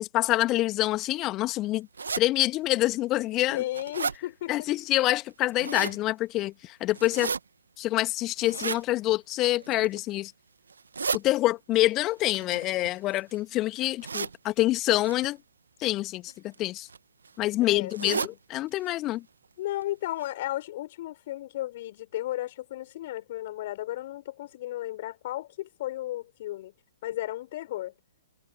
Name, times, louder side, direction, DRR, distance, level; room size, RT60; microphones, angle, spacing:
voice 1, 0.0-1.9 2.2-3.6 4.5-7.3 7.8-10.3 11.1-15.4 15.8-16.9 17.4-19.2, left 16 dB, 25° left, 2.4 m, -26 dB
sound 1, 2.0-2.2 2.9-3.0 3.4-4.2 5.3-6.0 6.9-7.4 8.4-8.8 9.6-10.0 10.7-11.2 12.3-13.3 14.0-14.4 15.0-15.3 16.3-16.6 16.9-17.0 17.2-17.3 17.9-18.3 18.8-18.9 19.1-19.2 19.8-19.9 20.2-20.3, right 5 dB, 65° right, 1.8 m, -33 dB
voice 2, 3.5-4.7 17.6-18.4 19.6-26.7 27.0-27.9, left 15 dB, 40° left, 6.9 m, -34 dB
figure-of-eight pair, 120°, 0 cm